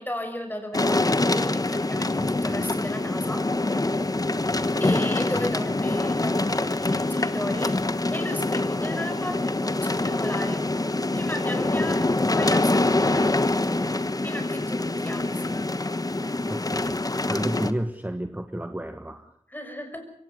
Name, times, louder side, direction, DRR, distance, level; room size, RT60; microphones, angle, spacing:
voice 1, 0.0-3.5 4.8-7.8 8.1-10.7 11.1-13.6 14.2-15.6 19.5-20.1, left 1 dB, 15° left, 5 dB, 6.0 m, -35 dB
sound 1, 0.7-17.7, left 2 dB, 30° left, 1.2 m, -25 dB
voice 2, 16.4-17.0 17.3-19.3, right 1 dB, 15° right, 8 dB, 1.4 m, -31 dB
23.0 x 17.5 x 6.8 m, 0.69 s
wide cardioid pair, 60°, 12 cm